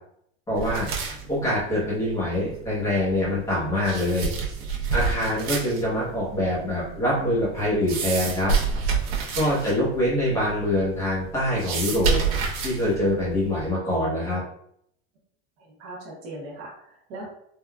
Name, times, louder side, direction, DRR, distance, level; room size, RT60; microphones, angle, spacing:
voice 1, 0.5-0.9 1.3-4.3 4.9-8.5 9.3-12.2 12.6-14.4, left 1 dB, 10° left, -9 dB, 0.8 m, -24 dB
sound 1, 0.5-13.7, right 5 dB, 75° right, 0.9 m, -30 dB
voice 2, 9.2-9.7 15.6-17.3, right 1 dB, 40° right, -5 dB, 0.9 m, -41 dB
3.6 x 2.3 x 2.2 m, 0.71 s
supercardioid pair, 175°, 32 cm